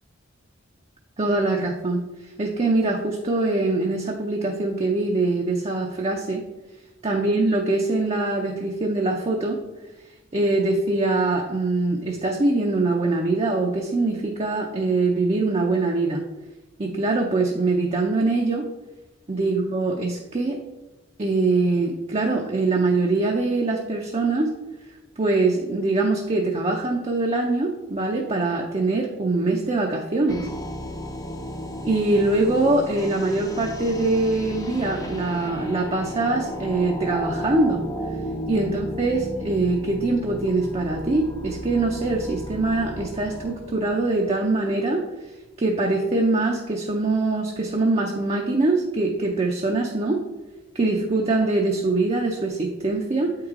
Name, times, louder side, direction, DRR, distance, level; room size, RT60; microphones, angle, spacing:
voice 1, 1.2-6.4 7.0-9.6 10.3-16.2 16.8-18.7 19.3-20.6 21.2-24.5 25.2-30.5 31.8-37.8 38.5-45.0 45.6-50.2 50.7-53.3, right 2 dB, 30° right, 1 dB, 0.6 m, -23 dB
sound 1, 30.3-44.4, equal, 20° left, 0.6 m, -34 dB
8.1 x 4.7 x 3.7 m, 1.1 s
head